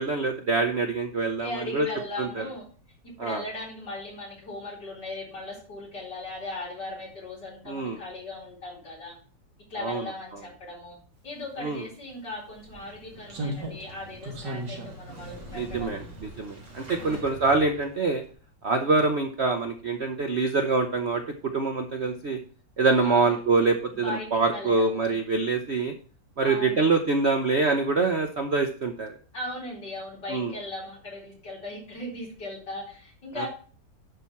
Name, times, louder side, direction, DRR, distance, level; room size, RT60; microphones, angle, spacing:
voice 1, 0.0-1.9 2.2-2.4 3.2-3.4 7.7-8.0 9.8-10.0 11.6-11.8 15.5-18.2 18.6-21.2 21.5-22.4 22.8-25.9 26.4-29.1 30.3-30.5 33.4-33.5, right 3 dB, 55° right, 6 dB, 0.7 m, -25 dB
voice 2, 1.4-2.7 3.0-9.1 9.7-11.0 11.2-16.1 17.0-17.4 22.9-23.4 24.0-25.2 26.4-26.9 29.3-33.5, left 2 dB, 65° left, -3 dB, 4.7 m, -38 dB
Slam, 11.9-12.0 13.3-16.8 17.1-17.3, right 1 dB, 70° right, 2.7 m, -37 dB
Motorcycle / Engine starting, 12.5-18.3, right 1 dB, 40° right, 2.5 m, -46 dB
10.5 x 4.3 x 5.7 m, 0.41 s
omnidirectional pair, 2.0 m